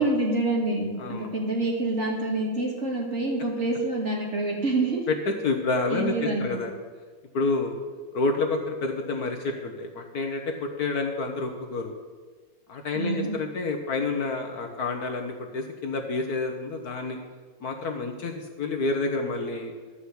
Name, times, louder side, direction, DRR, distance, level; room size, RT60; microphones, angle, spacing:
voice 1, 0.0-5.0 5.9-6.6 12.9-13.4, right 2 dB, 35° right, -1 dB, 2.5 m, -27 dB
voice 2, 1.0-1.3 5.1-6.7 7.3-7.8 8.1-11.9 12.7-17.2 17.6-19.7, left 3 dB, 60° left, 3 dB, 1.4 m, -29 dB
13.0 x 5.8 x 8.1 m, 1.4 s
omnidirectional pair, 2.0 m